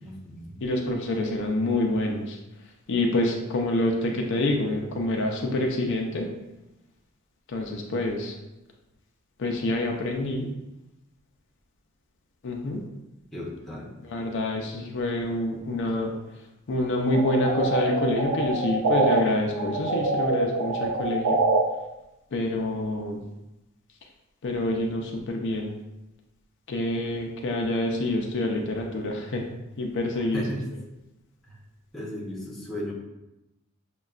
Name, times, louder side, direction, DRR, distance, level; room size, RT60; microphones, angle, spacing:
voice 1, 0.0-0.6 13.3-13.9 30.3-30.6 31.5-31.6 31.9-32.9, equal, ahead, -5 dB, 0.8 m, -35 dB
voice 2, 0.6-2.4 2.9-6.3 7.5-8.3 9.4-10.5 12.4-12.8 14.0-16.1 16.7-21.4 22.3-23.2 24.4-25.7 26.7-29.5 29.8-30.6, left 1 dB, 60° left, 1 dB, 0.5 m, -27 dB
sound 1, 17.1-19.2 19.5-21.6, right 3 dB, 80° right, 0.4 m, -25 dB
6.2 x 2.2 x 2.3 m, 0.97 s
head